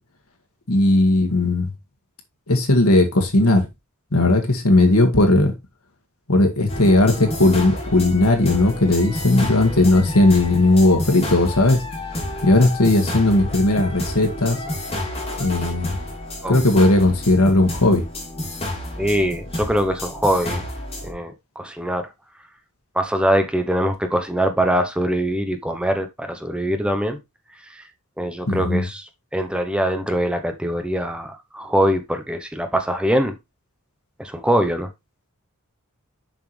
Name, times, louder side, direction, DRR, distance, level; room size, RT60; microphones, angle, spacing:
voice 1, 0.7-1.7 2.5-3.7 4.1-5.5 6.3-11.8 12.4-14.6 15.4-16.0 16.5-18.0 28.5-28.8, left 2 dB, 90° left, 1.9 m, -17 dB
sound 1, 6.7-21.1, left 1 dB, 25° left, 2.8 m, -30 dB
voice 2, 19.0-20.6 21.0-22.1 22.9-27.2 27.7-27.9 28.2-33.3 34.2-34.9, equal, 5° right, 0.8 m, -23 dB
7.1 x 5.8 x 3.3 m
head